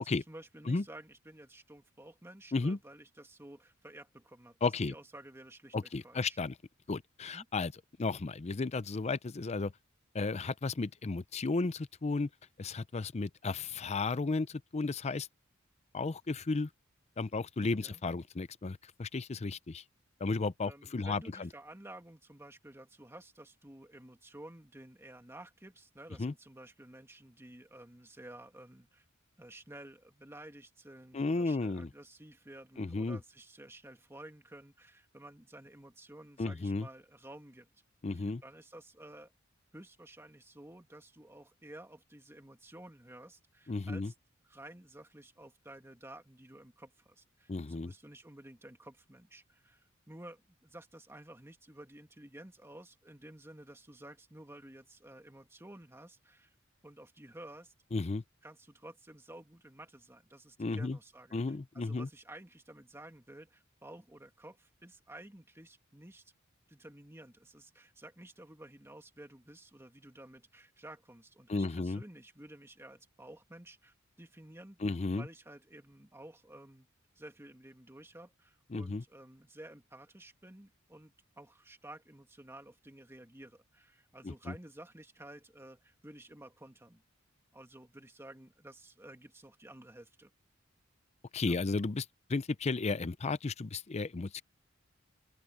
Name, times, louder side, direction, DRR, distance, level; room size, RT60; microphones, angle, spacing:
voice 1, 0.0-6.4 7.3-7.5 10.4-10.5 17.8-18.0 20.7-29.0 29.4-37.7 38.1-39.3 39.7-44.1 44.4-56.5 56.8-57.7 58.4-66.2 66.7-76.9 77.2-87.0 87.5-90.3 91.4-91.6, right 1 dB, 15° right, 2.2 m, -52 dB
voice 2, 4.6-4.9 5.7-6.5 6.9-7.7 8.0-9.7 10.1-12.3 12.6-15.3 15.9-16.7 17.2-19.8 20.2-21.5 26.2-26.3 31.1-31.9 32.8-33.2 36.4-36.9 38.0-38.4 43.7-44.1 47.5-47.9 57.9-58.2 60.6-61.0 61.3-62.1 71.5-72.0 74.8-75.3 78.7-79.0 84.2-84.5 91.3-94.4, left 3 dB, 30° left, 0.5 m, -34 dB
open air
head